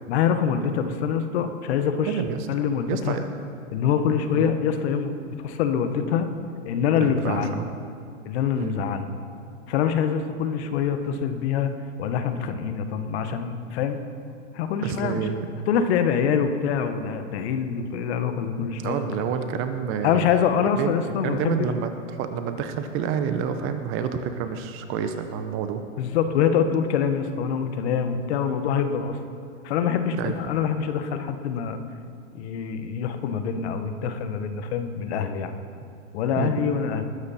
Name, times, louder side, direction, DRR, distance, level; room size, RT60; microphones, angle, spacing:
voice 1, 0.1-2.2 2.5-3.2 3.7-6.3 6.6-7.6 8.2-9.1 9.7-11.7 12.0-14.0 14.5-15.3 15.7-19.3 20.0-21.7 26.0-29.2 29.6-31.8 32.3-35.5 36.1-37.0, left 7 dB, 55° left, 8 dB, 1.3 m, -25 dB
voice 2, 2.1-2.5 2.9-3.2 4.3-4.5 7.0-7.7 8.6-8.7 14.8-15.5 18.6-20.3 20.8-25.8 30.2-30.3 36.4-36.5, right 7 dB, 30° right, 8 dB, 0.9 m, -29 dB
20.0 x 9.6 x 4.3 m, 2.3 s
hypercardioid pair, 125°, 39 cm